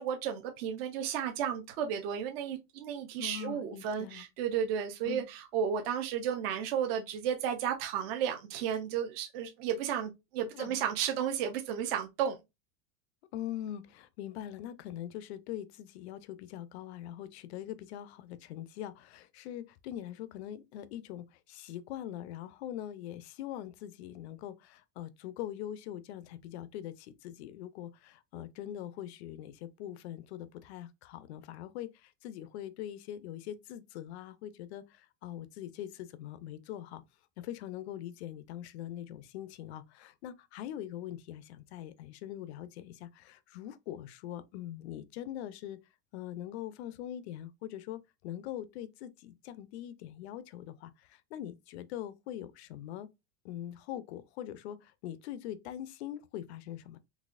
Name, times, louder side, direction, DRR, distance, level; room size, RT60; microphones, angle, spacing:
voice 1, 0.0-12.4, right 8 dB, 45° right, 0.5 m, -33 dB
voice 2, 3.2-4.3 5.0-5.3 10.5-10.9 13.3-37.0 37.4-45.8 46.1-53.1 53.4-57.0, left 11 dB, 55° left, 0.5 m, -42 dB
4.0 x 2.8 x 2.4 m
supercardioid pair, 175°, 41 cm